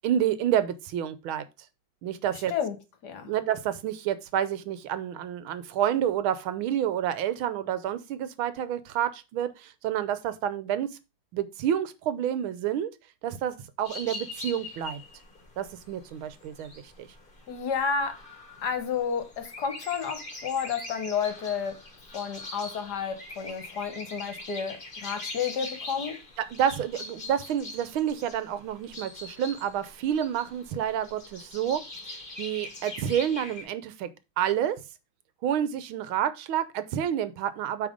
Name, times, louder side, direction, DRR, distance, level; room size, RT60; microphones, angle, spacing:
voice 1, 0.0-1.4 2.0-2.5 3.3-11.0 11.3-12.9 13.2-15.0 15.6-17.1 26.4-34.8 35.4-37.9, right 10 dB, 80° right, 1.6 m, -29 dB
sound 1, 13.8-33.6, left 2 dB, 30° left, 1.4 m, -43 dB
voice 2, 17.5-18.2 18.6-21.8 22.1-26.2, left 6 dB, 60° left, 1.5 m, -31 dB
8.7 x 3.6 x 5.0 m
omnidirectional pair, 2.2 m